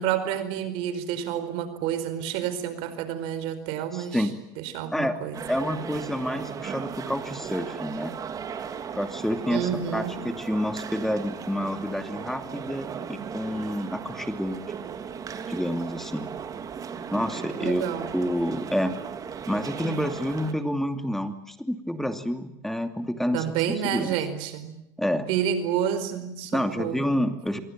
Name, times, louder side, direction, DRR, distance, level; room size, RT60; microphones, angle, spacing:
voice 1, 0.0-4.3 4.6-5.4 9.5-10.2 17.6-18.1 23.3-24.8 25.3-27.1, right 9 dB, 70° right, 12 dB, 4.7 m, -29 dB
voice 2, 3.9-4.3 4.9-5.1 5.5-8.1 8.9-14.6 15.5-16.3 17.1-17.8 18.1-18.9 19.5-23.5 23.8-24.2 25.0-25.3 26.5-27.6, equal, 5° left, 8 dB, 2.6 m, -28 dB
sound 1, 5.3-20.5, right 7 dB, 40° right, 3.2 m, -37 dB
26.0 x 23.5 x 9.1 m, 0.82 s
supercardioid pair, 95°, 10 cm